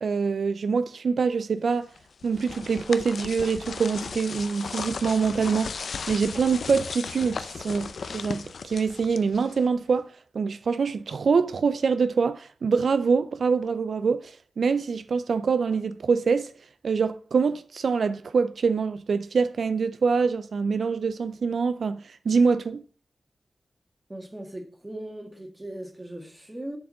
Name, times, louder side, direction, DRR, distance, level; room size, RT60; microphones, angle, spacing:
voice 1, 0.0-1.9 2.2-16.5 16.8-22.8, right 5 dB, 75° right, 0.4 m, -25 dB
sound 1, 1.9-9.8, left 5 dB, 75° left, 0.5 m, -36 dB
voice 2, 24.1-26.8, right 1 dB, 15° right, 1.6 m, -38 dB
7.3 x 4.7 x 6.4 m
wide cardioid pair, 115°, 0 cm